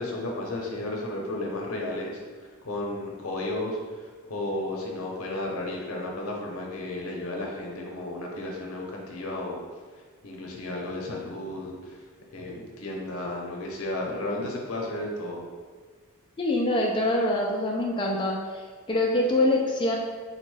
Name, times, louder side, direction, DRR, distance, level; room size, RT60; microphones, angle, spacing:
voice 1, 0.0-2.1 2.6-9.6 10.2-12.0 12.3-15.5, left 1 dB, 85° left, -1 dB, 0.7 m, -33 dB
voice 2, 16.4-18.4 18.9-20.0, left 1 dB, 20° left, -2 dB, 0.3 m, -24 dB
3.9 x 2.2 x 3.1 m, 1.6 s
head